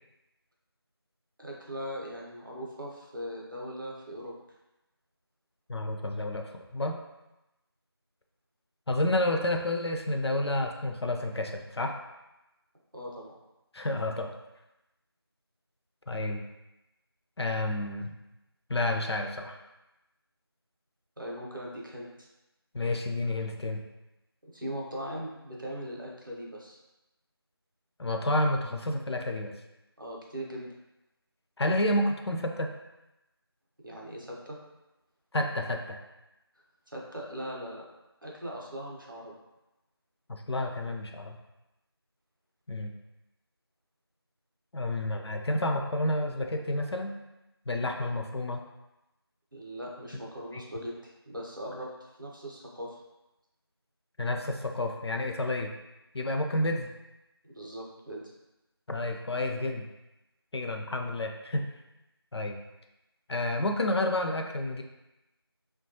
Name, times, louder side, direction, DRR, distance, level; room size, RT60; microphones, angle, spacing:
voice 1, 1.4-4.3 12.9-13.4 21.2-22.3 24.5-26.8 30.0-30.7 33.8-34.6 36.9-37.9 38.2-39.3 49.5-53.0 57.4-58.2, equal, 50° right, -2 dB, 0.6 m, -40 dB
voice 2, 5.7-7.0 8.9-12.0 13.7-14.4 16.1-16.4 17.4-18.1 18.7-19.6 22.7-23.8 28.0-29.5 31.6-32.7 35.3-36.0 40.3-41.4 42.7-42.9 44.7-47.1 47.7-48.6 50.5-50.6 54.2-55.7 56.1-56.9 58.9-59.9 60.5-61.7 62.3-62.6 63.3-64.8, left 1 dB, 80° left, 3 dB, 0.4 m, -30 dB
2.8 x 2.2 x 2.7 m, 0.96 s
figure-of-eight pair, 180°, 14 cm